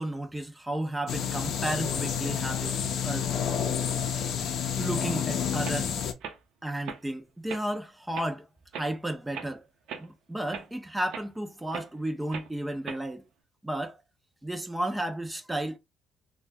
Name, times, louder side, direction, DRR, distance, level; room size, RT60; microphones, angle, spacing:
voice 1, 0.0-2.8 3.0-3.3 4.8-5.9 6.6-8.5 8.7-9.6 10.0-13.3 13.6-14.0 14.4-15.8, right 1 dB, 10° right, 0.4 m, -33 dB
sound 1, 1.1-6.1, left 8 dB, 65° left, 0.5 m, -29 dB
sound 2, 5.1-5.2 5.6-5.8 6.2-6.4 6.8-7.0 7.5-7.7 8.1-8.3 8.7-8.9 9.3-9.5 9.9-10.1 10.5-10.7 11.1-11.3 11.7-11.9 12.3-12.5 12.9-13.1, right 7 dB, 80° right, 0.6 m, -39 dB
2.7 x 2.1 x 3.2 m
cardioid pair, 120°, 0 cm